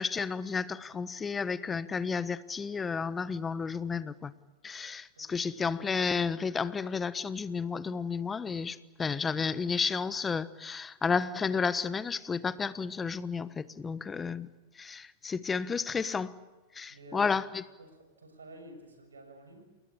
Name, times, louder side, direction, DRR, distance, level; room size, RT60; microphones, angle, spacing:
voice 1, 0.0-4.3 4.6-14.5 14.7-16.3 16.7-17.6, left 5 dB, 20° left, 15 dB, 1.2 m, -32 dB
voice 2, 5.2-5.5 16.9-17.4 17.8-19.6, right 1 dB, 90° right, 7 dB, 6.9 m, -50 dB
29.0 x 21.5 x 8.5 m, 1.2 s
hypercardioid pair, 105°, 0 cm